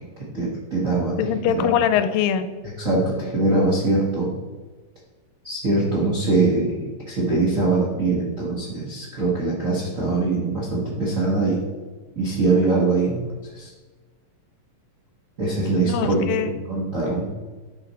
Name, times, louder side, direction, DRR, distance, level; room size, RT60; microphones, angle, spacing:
voice 1, 0.3-1.1 1.5-1.7 2.8-4.3 5.4-11.6 12.1-13.2 13.5-13.7 15.4-17.3, right 3 dB, 55° right, -6 dB, 0.8 m, -22 dB
voice 2, 1.2-2.5 15.8-16.5, left 9 dB, 90° left, 11 dB, 2.4 m, -22 dB
11.0 x 4.8 x 4.1 m, 1.3 s
omnidirectional pair, 4.0 m